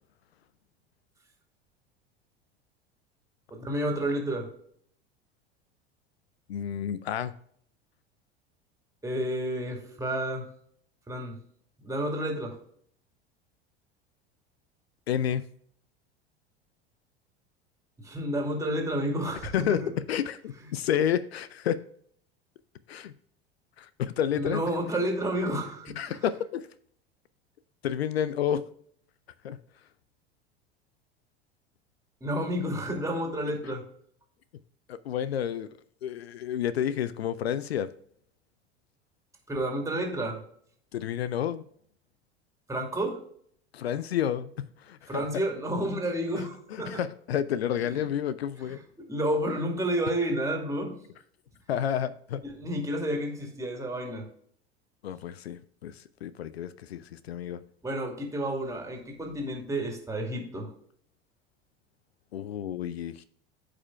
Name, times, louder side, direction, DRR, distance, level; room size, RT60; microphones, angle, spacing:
voice 1, 3.5-4.5 9.0-10.5 11.1-11.4 11.8-12.6 18.0-19.9 24.3-26.2 32.2-33.8 39.5-40.4 42.7-43.2 45.1-47.0 47.8-48.0 49.0-50.9 52.4-54.2 57.8-60.7, right 1 dB, 10° right, 2.4 m, -30 dB
voice 2, 6.5-7.3 15.1-15.4 19.4-19.8 20.1-21.8 22.9-23.1 23.8-24.6 26.0-26.7 27.8-28.6 29.4-29.6 34.9-35.7 36.0-37.9 40.9-41.6 43.7-45.3 46.4-46.5 46.7-48.8 51.7-52.4 55.0-57.6 62.3-63.2, left 9 dB, 75° left, 0.5 m, -30 dB
13.5 x 5.0 x 2.3 m
figure-of-eight pair, 75°, 32 cm